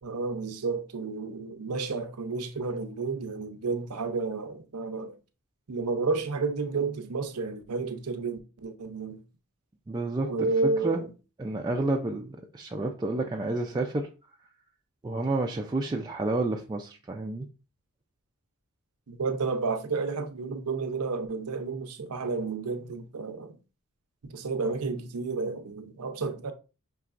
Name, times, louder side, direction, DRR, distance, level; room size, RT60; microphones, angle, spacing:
voice 1, 0.0-5.1 5.7-9.2 10.2-11.1 19.1-23.6 24.2-26.5, right 4 dB, 85° right, 0.7 m, -31 dB
voice 2, 9.9-10.5 10.8-11.0 11.4-14.1 15.0-17.5, right 2 dB, 20° right, 0.4 m, -30 dB
5.7 x 3.0 x 2.5 m
head